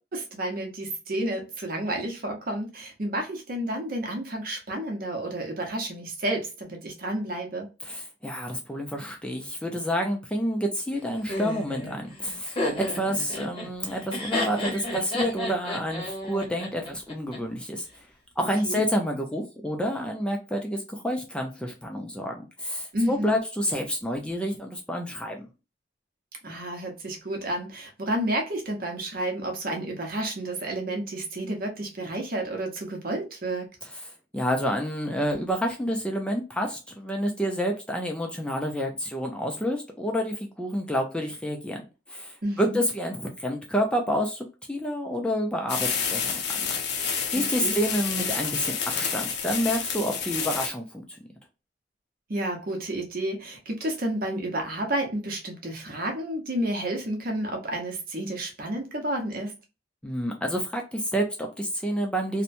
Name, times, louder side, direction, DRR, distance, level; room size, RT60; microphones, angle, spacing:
voice 1, 0.1-7.7 18.4-18.8 22.9-23.4 26.4-33.7 42.4-42.8 47.3-47.7 52.3-59.6, right 1 dB, 55° right, 0.8 m, -31 dB
voice 2, 7.8-18.0 18.4-25.5 33.9-41.8 42.1-46.4 47.0-51.2 60.0-62.4, equal, 5° left, 0.4 m, -29 dB
Laughter, 11.3-17.4, left 1 dB, 30° left, 0.9 m, -32 dB
sound 1, 45.7-50.7, left 6 dB, 65° left, 0.6 m, -29 dB
2.8 x 2.1 x 2.5 m
head